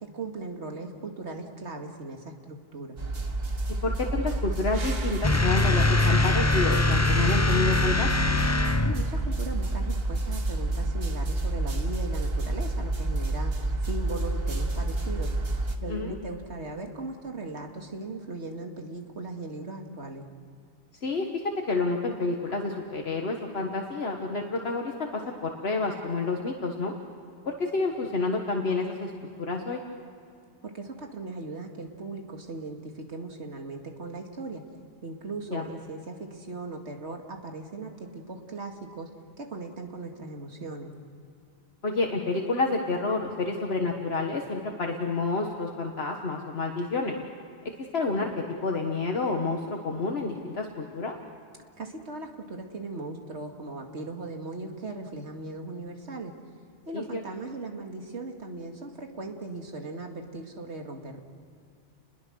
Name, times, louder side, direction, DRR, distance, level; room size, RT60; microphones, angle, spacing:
voice 1, 0.0-3.0 8.8-15.3 15.8-20.2 30.6-34.6 35.0-39.1 39.4-40.9 51.8-56.3 56.9-61.2, right 2 dB, 80° right, 3 dB, 2.4 m, -38 dB
sound 1, 3.0-15.8, right 2 dB, 60° right, 1.7 m, -29 dB
voice 2, 3.8-8.1 15.9-16.2 21.0-26.9 27.5-29.1 29.5-29.8 35.5-35.6 41.8-47.1 47.9-48.3 48.6-51.2 56.9-57.2, left 3 dB, 65° left, 1 dB, 1.7 m, -29 dB
sound 2, 5.2-9.2, left 2 dB, 15° left, 0.7 m, -23 dB
30.0 x 21.5 x 6.3 m, 2.4 s
omnidirectional pair, 1.1 m